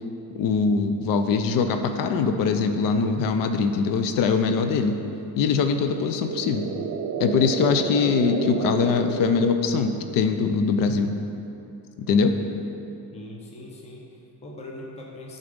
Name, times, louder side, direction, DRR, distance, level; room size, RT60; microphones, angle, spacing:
voice 1, 0.3-5.0 5.4-6.7 7.2-11.1 12.0-12.3, left 5 dB, 60° left, 7 dB, 0.5 m, -22 dB
sound 1, 5.9-10.1, right 6 dB, 45° right, 0.5 m, -31 dB
voice 2, 13.1-15.4, left 1 dB, 15° left, -2 dB, 0.7 m, -41 dB
10.0 x 4.1 x 5.1 m, 2.8 s
cardioid pair, 175°, 39 cm